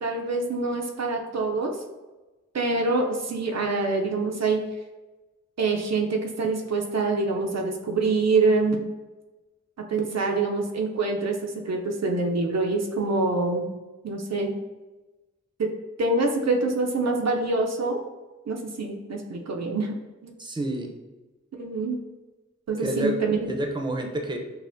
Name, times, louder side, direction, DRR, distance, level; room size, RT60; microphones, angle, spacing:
voice 1, 0.0-1.7 2.5-4.6 5.6-8.8 9.9-13.7 14.0-14.6 15.6-15.7 16.0-18.0 18.5-19.9 20.2-20.3 21.6-22.0 22.7-23.4, right 3 dB, 65° right, 1 dB, 0.5 m, -25 dB
voice 2, 20.4-20.9 22.8-23.1 23.5-24.4, right 1 dB, 15° right, 2 dB, 0.6 m, -28 dB
5.5 x 2.0 x 2.5 m, 1.2 s
cardioid pair, 40°, 29 cm